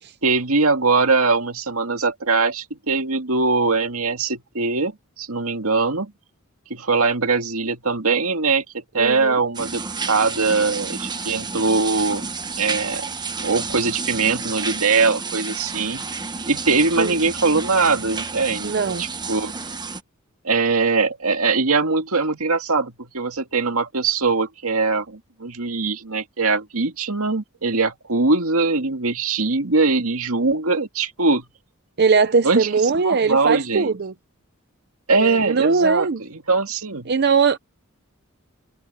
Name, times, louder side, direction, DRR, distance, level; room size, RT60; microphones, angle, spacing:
voice 1, 0.2-4.9 5.2-6.1 6.7-12.3 12.6-13.1 13.4-16.0 16.5-19.5 20.4-31.5 32.4-32.7 33.0-33.9 35.1-36.1 36.5-37.1, right 4 dB, 85° right, 2.2 m, -21 dB
voice 2, 9.0-9.4 17.0-17.1 18.6-19.0 32.0-34.1 35.1-36.2 37.1-37.6, right 5 dB, 50° right, 0.7 m, -20 dB
sound 1, 9.5-20.0, right 4 dB, 20° right, 1.1 m, -30 dB
head